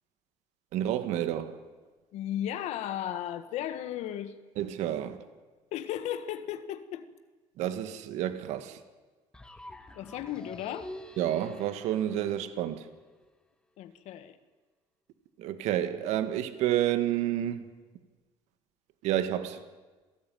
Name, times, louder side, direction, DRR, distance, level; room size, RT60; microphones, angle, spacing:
voice 1, 0.7-1.6 4.6-5.2 7.6-8.8 11.2-12.9 15.4-17.7 19.0-19.6, right 11 dB, 80° right, 1.8 m, -30 dB
voice 2, 2.1-4.3 5.7-7.0 9.9-10.9 13.8-14.4, left 11 dB, 75° left, 1.5 m, -35 dB
sound 1, 9.3-13.3, left 1 dB, 5° left, 1.7 m, -47 dB
27.5 x 17.5 x 9.2 m
cardioid pair, 130°, 12 cm